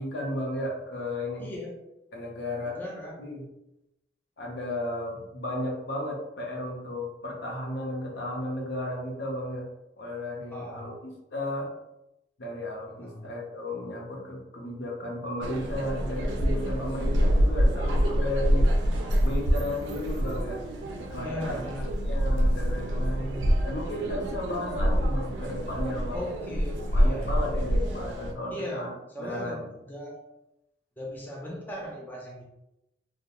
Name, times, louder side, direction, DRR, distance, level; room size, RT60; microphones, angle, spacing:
voice 1, 0.0-1.5 2.1-2.8 3.2-3.4 4.4-9.7 10.0-10.9 11.3-11.7 12.4-18.7 19.2-20.6 21.1-21.7 22.0-26.2 26.9-28.9 29.2-29.7, left 1 dB, 65° left, -1 dB, 0.6 m, -34 dB
voice 2, 1.4-1.8 2.7-3.2 10.5-10.9 12.8-13.3 21.2-21.8 26.1-27.5 28.5-30.3 31.0-32.4, equal, 10° left, -2 dB, 0.3 m, -38 dB
sound 1, 15.4-28.3, equal, 85° right, 0.4 m, -26 dB
2.3 x 2.1 x 2.8 m, 0.90 s
head